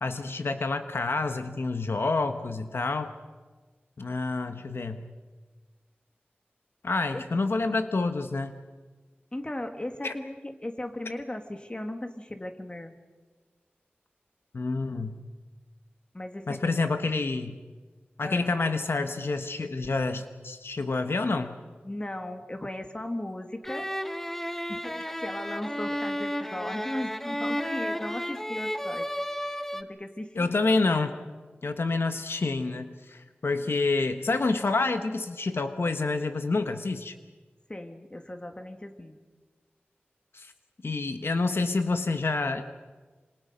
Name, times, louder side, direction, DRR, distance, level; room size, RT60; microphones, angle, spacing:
voice 1, 0.0-3.1 4.0-5.0 6.8-8.6 10.0-10.1 14.5-15.2 16.5-17.6 18.2-21.6 30.3-31.2 31.6-37.1 40.3-40.5 40.8-42.6, left 3 dB, 80° left, 8 dB, 1.2 m, -28 dB
voice 2, 9.3-12.9 16.1-16.8 18.2-18.5 21.8-23.9 24.4-29.1 29.7-30.6 37.7-39.2, left 1 dB, 25° left, 6 dB, 2.2 m, -37 dB
sound 1, 23.6-29.8, equal, 5° left, 1.0 m, -33 dB
27.0 x 26.5 x 5.3 m, 1.4 s
wide cardioid pair, 80°, 4 cm